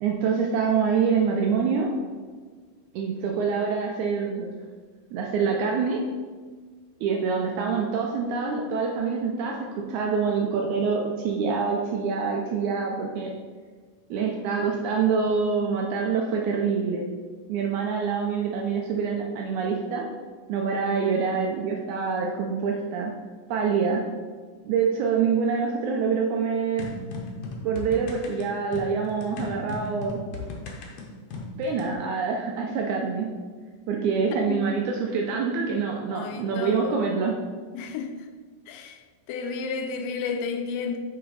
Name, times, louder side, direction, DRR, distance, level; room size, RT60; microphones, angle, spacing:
voice 1, 0.0-1.9 2.9-4.5 5.1-6.0 7.0-13.3 14.1-17.0 17.5-20.1 20.5-23.1 23.5-24.1 24.7-26.8 27.6-30.2 31.6-33.3 33.9-37.3, right 5 dB, 80° right, 0 dB, 1.8 m, -26 dB
sound 1, 26.8-31.9, left 3 dB, 70° left, 1.7 m, -37 dB
voice 2, 34.3-34.8 36.1-37.0 37.7-38.3 38.7-39.0 39.3-41.0, left 5 dB, 90° left, 5 dB, 2.4 m, -32 dB
7.5 x 3.8 x 4.0 m, 1.5 s
omnidirectional pair, 3.9 m